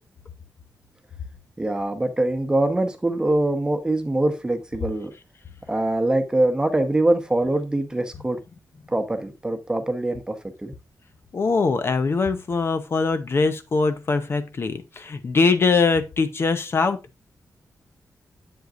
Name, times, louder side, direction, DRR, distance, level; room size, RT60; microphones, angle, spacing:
voice 1, 1.6-5.1 5.7-8.4 8.9-10.4 10.6-10.7, right 2 dB, 15° right, 1.0 m, -23 dB
voice 2, 11.3-17.0, left 4 dB, 40° left, 0.8 m, -22 dB
8.0 x 7.8 x 2.5 m
wide cardioid pair, 155°, 6 cm